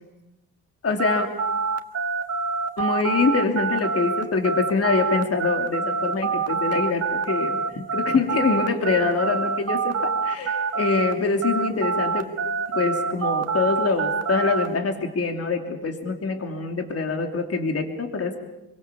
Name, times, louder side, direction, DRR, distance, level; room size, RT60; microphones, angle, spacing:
voice 1, 0.8-1.3 2.8-12.2 12.7-18.4, left 4 dB, 40° left, 4 dB, 2.9 m, -24 dB
sound 1, 1.0-11.1 11.4-14.7, right 5 dB, 40° right, 1.6 m, -26 dB
26.5 x 23.5 x 7.1 m, 0.94 s
cardioid pair, 120°, 37 cm